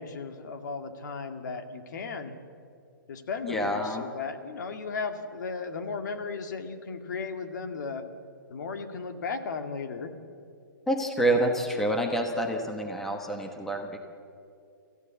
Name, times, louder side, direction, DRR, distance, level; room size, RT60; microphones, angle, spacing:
voice 1, 0.0-2.3 3.1-8.0 8.5-10.1, left 4 dB, 55° left, 7 dB, 2.1 m, -35 dB
voice 2, 3.4-4.0 10.9-14.0, right 1 dB, 5° left, 3 dB, 1.1 m, -27 dB
27.0 x 15.0 x 8.3 m, 2.4 s
hypercardioid pair, 170°, 11 cm